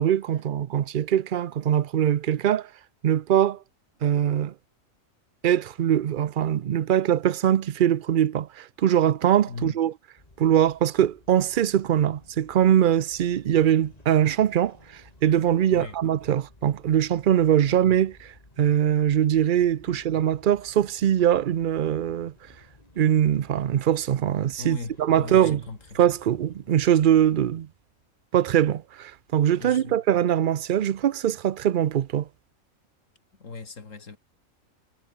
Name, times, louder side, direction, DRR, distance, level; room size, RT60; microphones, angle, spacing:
voice 1, 0.0-2.7 3.0-3.6 4.0-4.5 5.4-9.9 10.4-22.3 23.0-25.6 26.0-27.7 28.3-32.3, right 10 dB, 55° right, 0.6 m, -22 dB
voice 2, 9.5-9.8 15.7-15.9 17.7-17.8 19.9-20.0 24.6-26.0 29.6-30.0 33.4-34.2, left 4 dB, 65° left, 2.9 m, -38 dB
sound 1, 10.2-27.4, left 2 dB, 30° left, 2.9 m, -55 dB
omnidirectional pair, 1.4 m